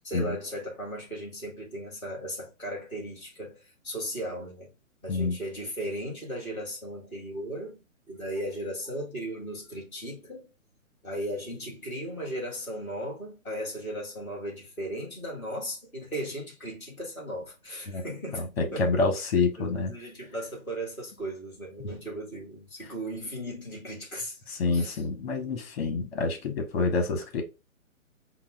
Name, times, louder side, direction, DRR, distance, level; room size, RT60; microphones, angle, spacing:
voice 1, 0.0-4.7 5.0-10.5 11.0-18.9 19.6-25.0, right 1 dB, 5° left, 0.5 m, -37 dB
voice 2, 18.3-19.9 21.8-21.9 24.5-27.4, left 3 dB, 45° left, 1.5 m, -27 dB
5.4 x 2.5 x 3.3 m
figure-of-eight pair, 135°, 42 cm